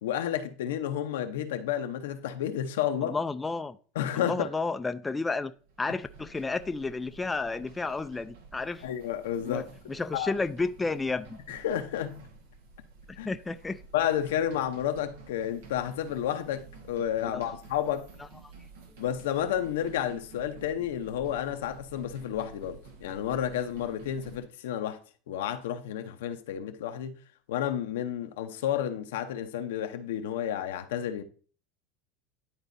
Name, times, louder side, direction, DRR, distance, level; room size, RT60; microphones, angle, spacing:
voice 1, 0.0-3.2 3.9-4.5 8.8-9.7 10.1-10.3 11.5-12.3 13.2-13.3 13.9-18.1 19.0-25.0 25.3-27.2 27.5-31.2, left 10 dB, 85° left, 0.8 m, -31 dB
voice 2, 3.0-3.8 4.1-5.5 5.8-8.8 9.4-11.4 13.1-13.8 17.3-17.4, left 3 dB, 15° left, 0.4 m, -32 dB
sound 1, 5.5-24.4, right 4 dB, 85° right, 1.3 m, -51 dB
11.0 x 4.0 x 2.6 m
supercardioid pair, 115°, 0 cm